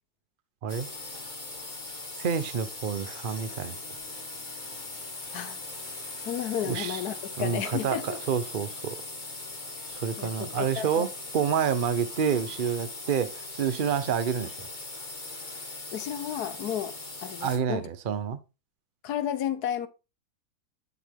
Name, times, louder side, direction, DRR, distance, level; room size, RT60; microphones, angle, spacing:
sound 1, 0.7-17.6, left 2 dB, 30° left, 1.6 m, -40 dB
voice 1, 2.1-3.8 6.6-7.0 7.4-9.0 9.9-14.7 17.4-18.4, right 7 dB, 45° right, 0.7 m, -28 dB
voice 2, 6.2-8.2 10.2-11.0 15.9-17.0 17.2-17.8 19.0-19.9, left 9 dB, 75° left, 1.3 m, -32 dB
8.3 x 6.0 x 3.5 m
omnidirectional pair, 1.7 m